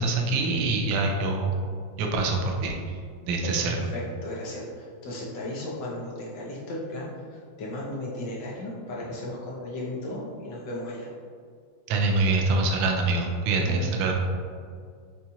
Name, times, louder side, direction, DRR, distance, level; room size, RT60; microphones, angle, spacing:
voice 1, 0.0-1.5 2.0-2.8 3.3-3.8 11.9-14.1, right 3 dB, 80° right, 1 dB, 1.4 m, -25 dB
voice 2, 3.9-11.1 13.7-13.8, left 1 dB, 60° left, -4 dB, 1.5 m, -35 dB
6.9 x 2.4 x 2.8 m, 2.1 s
omnidirectional pair, 2.4 m